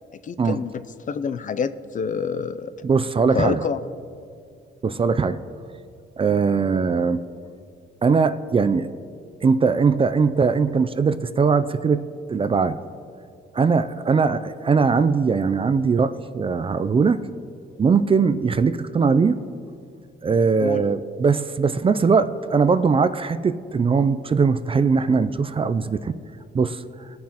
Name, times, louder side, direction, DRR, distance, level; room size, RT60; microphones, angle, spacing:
voice 1, 0.2-2.7 3.3-3.8 20.6-20.8, left 6 dB, 40° left, 12 dB, 0.5 m, -27 dB
voice 2, 2.8-3.7 4.8-5.4 6.2-7.2 8.0-8.9 9.4-12.0 12.3-12.8 13.5-17.2 17.8-19.4 20.2-26.1 26.5-26.8, right 5 dB, 25° right, 11 dB, 0.4 m, -20 dB
18.5 x 7.3 x 3.0 m, 2.3 s
cardioid pair, 90°, 20 cm